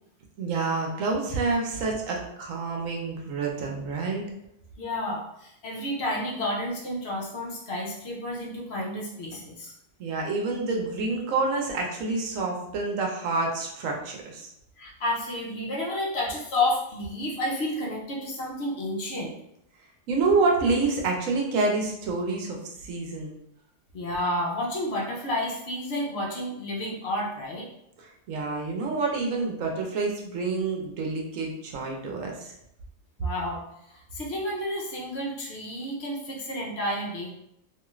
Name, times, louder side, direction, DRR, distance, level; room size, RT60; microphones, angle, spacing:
voice 1, 0.4-4.2 10.0-14.5 20.1-23.3 28.0-32.5, right 3 dB, 85° right, 0 dB, 1.1 m, -28 dB
voice 2, 4.8-9.7 14.8-19.3 23.9-27.7 33.2-33.6 33.9-37.3, left 1 dB, 60° left, -2 dB, 0.9 m, -30 dB
2.8 x 2.3 x 3.0 m, 0.78 s
omnidirectional pair, 1.3 m